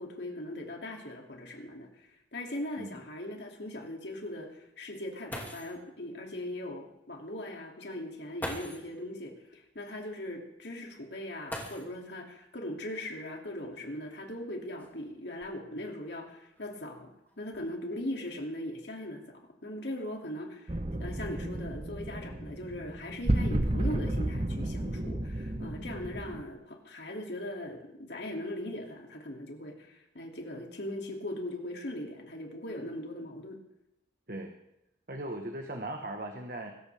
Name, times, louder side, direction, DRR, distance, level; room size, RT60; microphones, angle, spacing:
voice 1, 0.0-17.1 17.4-33.6, left 1 dB, 70° left, 1 dB, 2.8 m, -40 dB
sound 1, 5.0-5.1 5.3-5.9 7.1-7.2 8.4-9.0 11.4-12.2 13.6-13.7 14.4-15.9 16.5-16.9 17.3-17.7, left 1 dB, 10° left, 2.5 m, -42 dB
sound 2, 20.7-26.4, right 1 dB, 30° right, 0.9 m, -32 dB
voice 2, 35.1-36.7, right 1 dB, 50° right, 3 dB, 1.4 m, -38 dB
24.0 x 14.0 x 3.6 m, 0.86 s
head